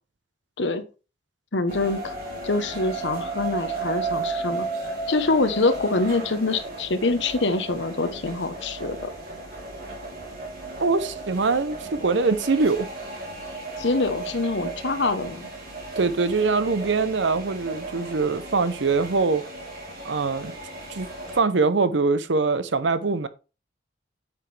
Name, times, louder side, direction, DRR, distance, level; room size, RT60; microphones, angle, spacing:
voice 1, 1.5-2.1 2.4-9.0 13.8-15.5, left 3 dB, 75° left, 1.0 m, -25 dB
sound 1, 1.7-21.4, right 3 dB, 50° right, 2.8 m, -35 dB
voice 2, 10.8-12.9 16.0-19.4 20.0-20.5 20.9-21.1 21.3-23.3, right 4 dB, 80° right, 0.7 m, -23 dB
9.0 x 6.1 x 3.3 m
head